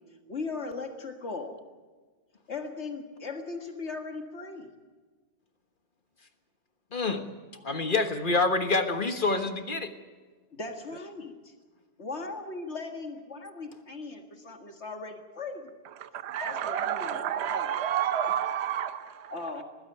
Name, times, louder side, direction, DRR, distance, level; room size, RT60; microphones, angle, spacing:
voice 1, 0.3-1.5 2.5-4.7 7.6-7.7 10.5-11.5 12.0-15.7 16.4-17.7 19.3-19.6, left 3 dB, 70° left, 5 dB, 2.1 m, -38 dB
voice 2, 6.9-7.3 7.6-9.9, left 3 dB, 45° left, 8 dB, 1.5 m, -27 dB
voice 3, 16.0-19.3, right 10 dB, 65° right, 11 dB, 1.1 m, -30 dB
20.5 x 15.5 x 9.2 m, 1.4 s
omnidirectional pair, 1.2 m